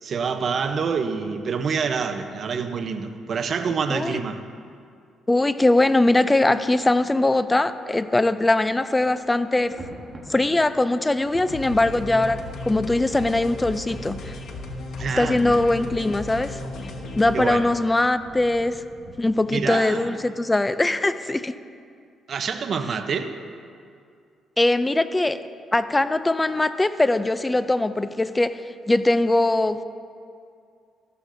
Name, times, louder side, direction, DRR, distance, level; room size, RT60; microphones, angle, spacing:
voice 1, 0.0-4.4 15.0-15.6 17.3-17.7 19.5-20.2 22.3-23.3, right 5 dB, 55° right, 8 dB, 0.7 m, -27 dB
voice 2, 3.9-4.2 5.3-9.7 10.3-14.3 15.2-16.6 17.2-18.8 19.2-21.5 24.6-25.5 25.7-28.6 28.9-29.8, left 2 dB, 15° left, 12 dB, 0.4 m, -21 dB
Thunder, 8.2-8.6 8.9-19.7, right 1 dB, 25° right, 1.4 m, -48 dB
sound 1, 11.5-17.5, left 2 dB, 70° left, 1.4 m, -35 dB
14.5 x 12.5 x 2.7 m, 2.3 s
cardioid pair, 90°, 0 cm